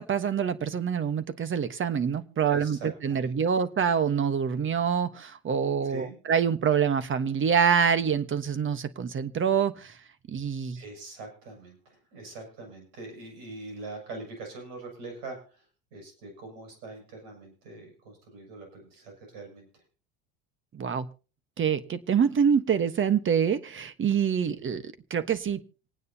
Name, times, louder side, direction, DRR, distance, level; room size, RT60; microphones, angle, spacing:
voice 1, 0.0-10.0 10.3-10.8 20.7-21.1 21.6-25.6, right 7 dB, 30° right, 13 dB, 1.2 m, -26 dB
voice 2, 2.5-3.3 5.8-6.2 10.8-19.8, right 3 dB, 70° right, 3 dB, 7.2 m, -43 dB
26.5 x 9.4 x 2.8 m, 0.35 s
hypercardioid pair, 85°, 40 cm